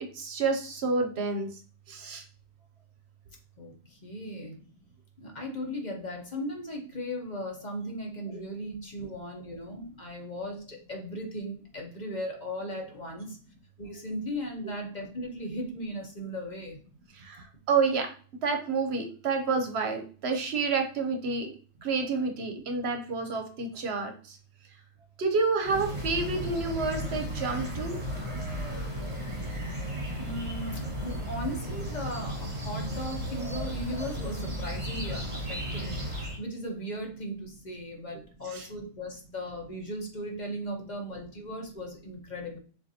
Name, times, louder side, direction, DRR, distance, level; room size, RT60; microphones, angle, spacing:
voice 1, 0.1-1.5 1.9-2.2 17.2-18.1 18.4-21.5 21.8-24.4 25.2-28.0 38.5-38.7, right 4 dB, 65° right, 4 dB, 0.9 m, -29 dB
voice 2, 3.6-4.7 5.2-13.4 13.8-16.8 30.2-36.0 36.4-42.6, equal, 40° left, 1 dB, 1.0 m, -37 dB
sound 1, 25.6-36.4, equal, 25° right, 1.2 m, -34 dB
6.6 x 2.5 x 2.8 m, 0.41 s
omnidirectional pair, 1.2 m